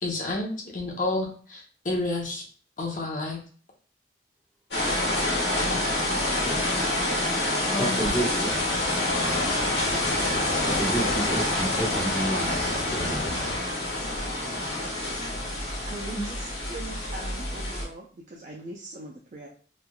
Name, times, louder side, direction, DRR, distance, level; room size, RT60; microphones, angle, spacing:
voice 1, 0.0-2.4 2.8-3.4 5.7-5.8 7.7-8.0, left 2 dB, 45° left, -1 dB, 0.7 m, -30 dB
sound 1, 4.7-17.8, left 1 dB, 75° left, 1.3 m, -27 dB
voice 2, 6.4-6.9 7.4-8.7 10.6-13.6 16.1-16.2, right 1 dB, 5° left, -11 dB, 1.1 m, -31 dB
sound 2, 8.5-13.6, left 4 dB, 90° left, 0.4 m, -35 dB
voice 3, 15.9-19.5, right 2 dB, 45° right, -1 dB, 0.4 m, -41 dB
3.1 x 2.3 x 2.2 m, 0.43 s
head